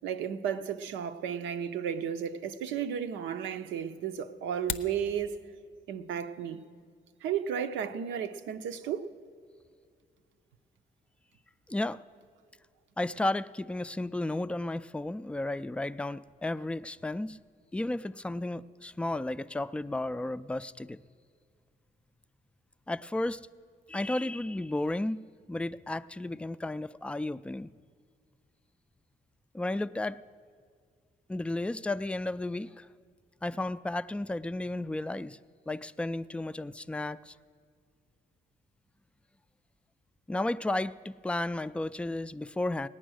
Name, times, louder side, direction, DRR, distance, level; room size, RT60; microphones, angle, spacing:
voice 1, 0.0-5.4 5.9-6.6 7.2-9.1, right 8 dB, 85° right, 0.6 m, -33 dB
sound 1, 4.4-5.0, left 8 dB, 80° left, 0.7 m, -36 dB
voice 2, 11.7-12.0 13.0-17.4 17.7-21.0 22.9-23.4 23.9-25.2 25.5-27.7 29.5-30.2 31.3-32.9 33.4-35.4 35.7-37.3 40.3-42.9, left 2 dB, 5° left, 0.3 m, -33 dB
18.0 x 9.0 x 6.3 m
supercardioid pair, 65°, 19 cm